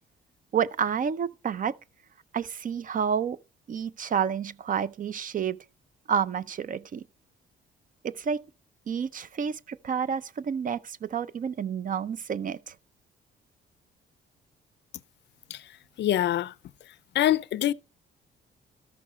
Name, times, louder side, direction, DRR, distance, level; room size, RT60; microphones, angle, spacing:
voice 1, 0.5-1.7 2.3-3.4 3.7-5.6 6.1-7.0 8.0-8.4 8.9-12.7, right 7 dB, 45° right, 0.5 m, -29 dB
voice 2, 16.0-16.5 17.1-17.7, left 12 dB, 60° left, 0.4 m, -24 dB
13.0 x 6.0 x 3.1 m
cardioid pair, 90°, 20 cm